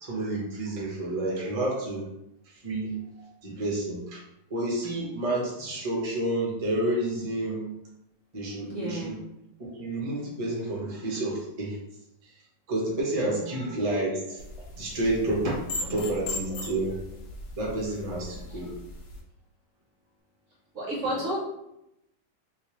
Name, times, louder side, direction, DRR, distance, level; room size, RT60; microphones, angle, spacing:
voice 1, 0.0-2.1 2.5-4.2 4.5-7.7 8.3-9.2 9.6-11.8 12.2-12.3 12.7-14.4 14.8-15.5 15.9-17.0 17.6-18.7 21.1-21.2, right 1 dB, 35° right, -3 dB, 0.6 m, -30 dB
voice 2, 8.7-9.2 13.4-13.7 15.8-16.0 20.7-21.4, right 1 dB, 55° right, -4 dB, 0.9 m, -32 dB
sound 1, 14.4-19.2, left 2 dB, 70° left, 1.1 m, -38 dB
3.4 x 2.8 x 3.0 m, 0.84 s
omnidirectional pair, 1.9 m